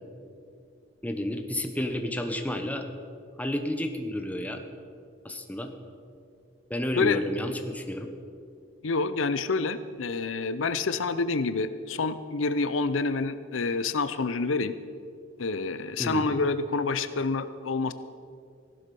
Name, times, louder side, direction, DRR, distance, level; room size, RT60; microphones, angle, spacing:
voice 1, 1.0-2.8 3.4-4.6 5.2-5.7 6.7-8.1 16.0-16.3, left 1 dB, 10° left, 5 dB, 1.0 m, -31 dB
voice 2, 8.8-14.7 15.4-17.9, left 4 dB, 85° left, 13 dB, 0.6 m, -28 dB
15.5 x 12.0 x 5.4 m, 2.4 s
head